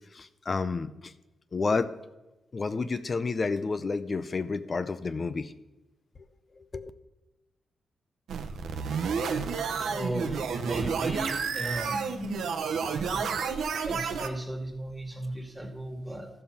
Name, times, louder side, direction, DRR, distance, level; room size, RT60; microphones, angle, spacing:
voice 1, 0.1-1.1 1.5-1.9 2.5-5.5 6.7-6.9, left 4 dB, 40° left, 11 dB, 0.5 m, -30 dB
sound 1, 8.3-14.3, right 5 dB, 85° right, 0.8 m, -30 dB
voice 2, 9.8-12.4 12.8-16.3, right 1 dB, 10° right, 4 dB, 1.8 m, -36 dB
13.5 x 5.5 x 5.8 m, 1.0 s
cardioid pair, 80°, 0 cm